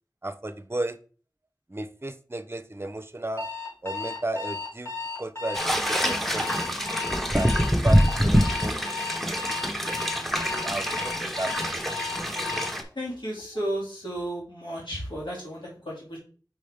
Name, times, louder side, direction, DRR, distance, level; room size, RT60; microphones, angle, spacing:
voice 1, 0.2-1.0 1.7-3.5 3.8-4.9 5.2-5.6 5.9-6.7 7.3-7.5 7.8-8.8 9.3-9.4 9.7-10.1 10.6-11.8, right 2 dB, 30° right, 11 dB, 0.6 m, -34 dB
Alarm, 3.4-12.8, left 4 dB, 35° left, 2.3 m, -34 dB
sound 1, 5.5-12.8, equal, 5° left, 0.9 m, -25 dB
voice 2, 13.0-16.2, right 1 dB, 85° left, -5 dB, 2.5 m, -33 dB
5.4 x 5.1 x 3.4 m, 0.39 s
wide cardioid pair, 45°, 8 cm